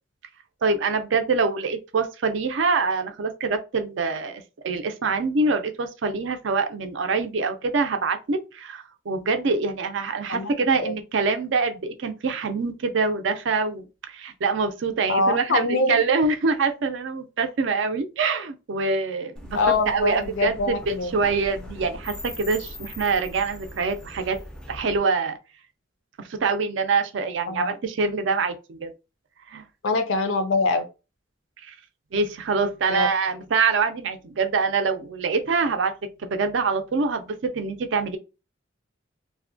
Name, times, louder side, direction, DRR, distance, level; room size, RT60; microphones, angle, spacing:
voice 1, 0.6-19.6 19.9-24.4 24.7-25.4 26.2-28.9 29.5-29.6 31.6-31.7 32.1-35.9 36.2-38.2, right 4 dB, 70° right, 0.4 m, -25 dB
voice 2, 15.1-16.0 19.5-21.1 27.5-27.7 29.8-30.9 32.9-33.1, left 3 dB, 75° left, 0.4 m, -23 dB
sound 1, 19.4-25.0, left 1 dB, 5° left, 0.3 m, -40 dB
2.6 x 2.1 x 2.6 m
head